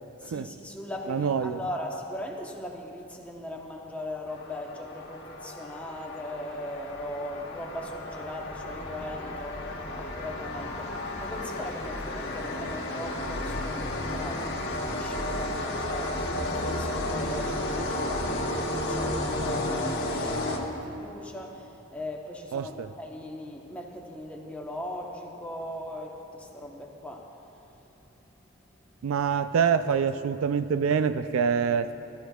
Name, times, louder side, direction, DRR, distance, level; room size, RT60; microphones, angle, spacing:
voice 1, 0.2-28.1 28.9-29.1, left 1 dB, 5° left, 0 dB, 0.9 m, -39 dB
voice 2, 1.1-1.6 22.5-22.9 29.0-31.9, right 6 dB, 70° right, 11 dB, 0.3 m, -25 dB
sound 1, 4.3-21.1, left 1 dB, 50° left, 1.2 m, -32 dB
19.0 x 13.0 x 2.3 m, 3.0 s
head